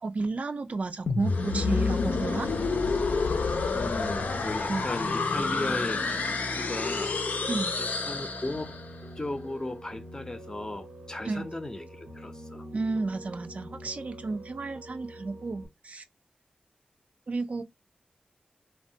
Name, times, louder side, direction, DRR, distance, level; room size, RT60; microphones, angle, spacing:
voice 1, 0.0-2.5 4.7-4.9 7.5-7.8 11.3-11.4 12.7-16.0 17.3-17.6, right 3 dB, 55° right, 0.3 m, -32 dB
sound 1, 1.1-8.9, left 4 dB, 85° left, 0.4 m, -29 dB
Piano, 1.3-15.7, right 1 dB, 90° right, 0.7 m, -44 dB
voice 2, 3.7-7.2 7.8-8.8 9.2-12.7, left 2 dB, 25° left, 0.5 m, -36 dB
3.1 x 2.1 x 2.6 m
wide cardioid pair, 100°, 3 cm